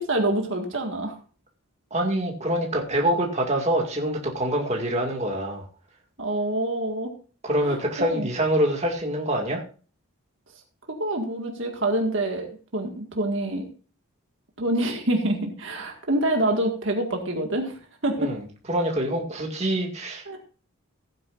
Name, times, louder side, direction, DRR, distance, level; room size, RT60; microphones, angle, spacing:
voice 1, 0.1-1.2 6.2-7.1 7.6-8.3 11.0-13.7 14.6-17.8 18.0-18.3 20.3-20.4, right 1 dB, 60° right, 2 dB, 1.9 m, -26 dB
voice 2, 1.9-5.7 7.4-9.6 18.2-18.4 18.7-20.2, right 1 dB, 30° right, 1 dB, 2.2 m, -25 dB
16.0 x 9.5 x 2.6 m, 0.37 s
head